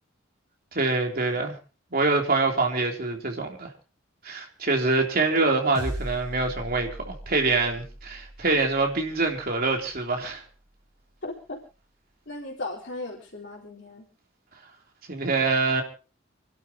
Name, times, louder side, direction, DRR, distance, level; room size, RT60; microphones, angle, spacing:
voice 1, 0.7-1.6 1.9-3.7 4.2-10.4 15.1-15.8, right 3 dB, 45° right, 3.3 m, -25 dB
sound 1, 5.7-10.3, equal, 15° right, 6.9 m, -39 dB
voice 2, 11.2-11.6 12.3-14.1, left 2 dB, 60° left, 4.1 m, -37 dB
29.5 x 12.0 x 2.9 m
head